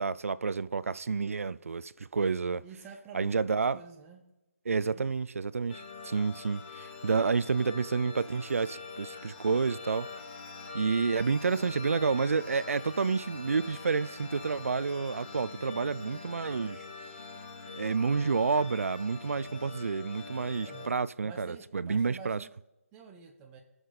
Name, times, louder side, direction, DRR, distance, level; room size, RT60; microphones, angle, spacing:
voice 1, 0.0-2.6 3.1-3.8 4.7-10.1 10.7-16.8 17.7-22.4, right 5 dB, 75° right, 0.4 m, -29 dB
voice 2, 2.6-4.2 4.7-5.0 7.2-7.3 20.6-20.9 21.2-22.5 22.9-23.6, right 6 dB, 10° right, 0.6 m, -48 dB
sound 1, 5.7-20.9, left 4 dB, 55° left, 2.4 m, -44 dB
17.5 x 6.2 x 4.0 m
hypercardioid pair, 170°, 8 cm